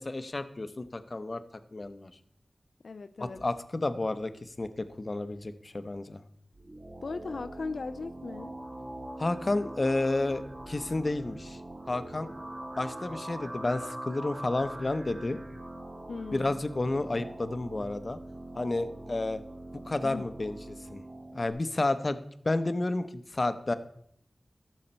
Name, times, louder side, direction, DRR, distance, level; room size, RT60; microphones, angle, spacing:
voice 1, 0.0-1.4 1.7-2.1 3.2-6.2 9.2-11.6 11.9-12.3 12.8-15.4 16.3-18.2 18.6-19.4 19.9-20.6 20.9-21.0 21.3-22.2 22.4-23.7, left 2 dB, 45° left, 11 dB, 0.7 m, -31 dB
voice 2, 2.8-3.4 7.0-8.5 16.1-16.6 20.0-20.3, left 4 dB, 85° left, 10 dB, 0.3 m, -38 dB
sound 1, 6.5-21.5, right 1 dB, 50° right, 2.0 m, -43 dB
13.5 x 6.5 x 4.4 m, 0.69 s
wide cardioid pair, 85°, 0 cm